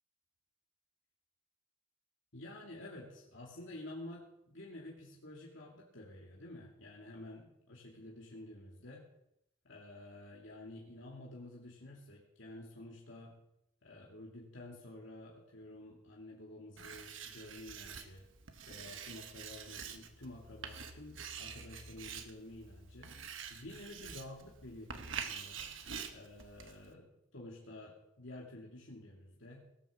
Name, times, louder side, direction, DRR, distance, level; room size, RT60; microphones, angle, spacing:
voice 1, 2.3-9.1 9.6-13.4 13.8-18.3 18.7-23.1 23.5-25.6 26.1-27.1 27.3-29.6, left 1 dB, 65° left, -3 dB, 2.5 m, -50 dB
Writing, 16.8-26.9, right 6 dB, 65° right, 1.3 m, -47 dB
18.0 x 6.7 x 7.2 m, 0.82 s
head